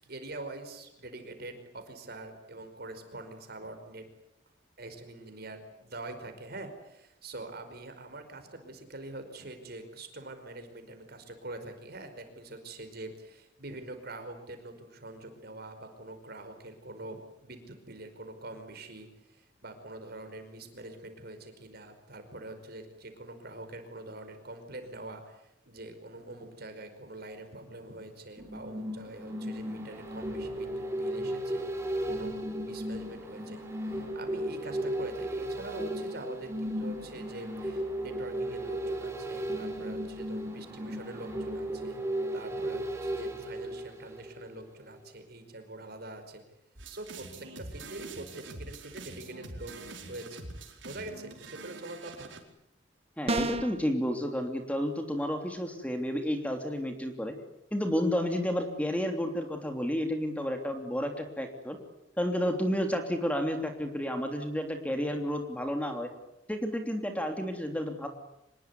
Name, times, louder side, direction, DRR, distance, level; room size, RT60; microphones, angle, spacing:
voice 1, 0.0-4.1 4.8-42.0 42.3-46.4 46.8-50.5 50.8-52.3, right 2 dB, 55° right, 7 dB, 5.2 m, -44 dB
sound 1, 28.4-44.6 45.0-45.1, right 1 dB, 15° right, 6.1 m, -35 dB
sound 2, 46.8-52.4, right 2 dB, 80° right, 4.8 m, -45 dB
voice 2, 53.2-57.3 57.7-61.8 62.2-66.1 66.5-68.1, equal, 10° left, 5 dB, 3.1 m, -31 dB
sound 3, 53.3-53.8, right 2 dB, 35° right, 1.6 m, -29 dB
25.5 x 21.5 x 9.7 m, 0.82 s
head